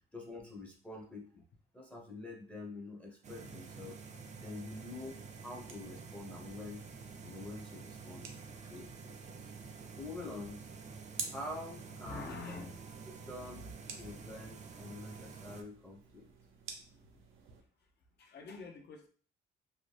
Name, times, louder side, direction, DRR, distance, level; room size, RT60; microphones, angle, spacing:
voice 1, 0.1-1.4 1.7-4.0 4.4-6.8 7.2-8.3 8.7-9.5 10.0-10.6 11.3-12.3 13.1-13.7 14.0-16.3, left 2 dB, 5° left, -1 dB, 0.6 m, -46 dB
sound 1, 3.2-15.6, right 5 dB, 35° right, 0.5 m, -49 dB
sound 2, 5.2-17.6, right 5 dB, 85° right, 0.6 m, -52 dB
voice 2, 12.0-12.9 18.2-19.1, left 3 dB, 55° left, 4 dB, 0.7 m, -46 dB
2.8 x 2.1 x 3.1 m, 0.42 s
cardioid pair, 90°, 20 cm